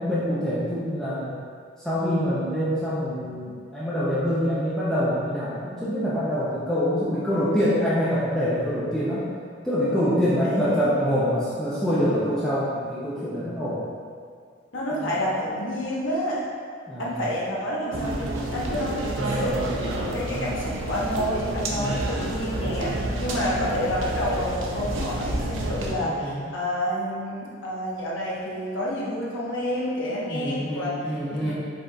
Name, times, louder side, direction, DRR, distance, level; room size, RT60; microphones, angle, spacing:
voice 1, 0.0-1.4 1.8-9.3 9.6-13.9 14.9-15.2 16.9-17.1 21.7-22.0 26.0-26.4 30.3-31.5, equal, 5° left, -11 dB, 0.6 m, -25 dB
voice 2, 10.4-10.9 14.7-16.4 17.0-30.9 31.3-31.5, equal, 80° left, -6 dB, 1.1 m, -29 dB
sound 1, 17.9-25.9, right 1 dB, 80° right, 0.6 m, -29 dB
5.3 x 4.2 x 2.3 m, 2.2 s
head